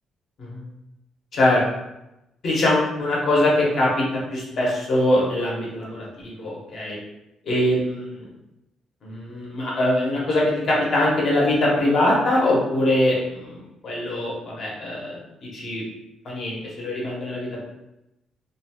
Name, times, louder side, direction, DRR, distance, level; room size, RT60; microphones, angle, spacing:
voice 1, 1.3-1.6 2.4-7.0 7.4-8.2 9.0-13.6 13.8-15.8 16.2-17.6, left 1 dB, 50° left, -4 dB, 0.9 m, -22 dB
2.6 x 2.2 x 2.8 m, 0.91 s
cardioid pair, 145°, 0 cm